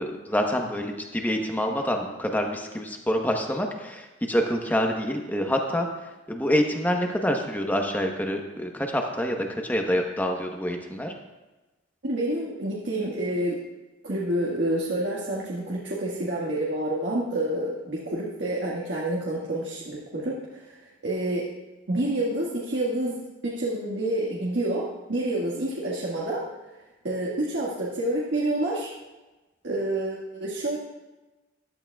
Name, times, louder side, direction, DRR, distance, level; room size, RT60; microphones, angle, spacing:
voice 1, 0.0-5.9 6.3-11.1, equal, 10° left, 2 dB, 1.0 m, -26 dB
voice 2, 12.0-13.6 14.0-21.5 21.9-26.5 27.0-28.9 29.6-30.8, right 1 dB, 70° right, -5 dB, 1.7 m, -28 dB
14.5 x 12.0 x 2.4 m, 1.1 s
head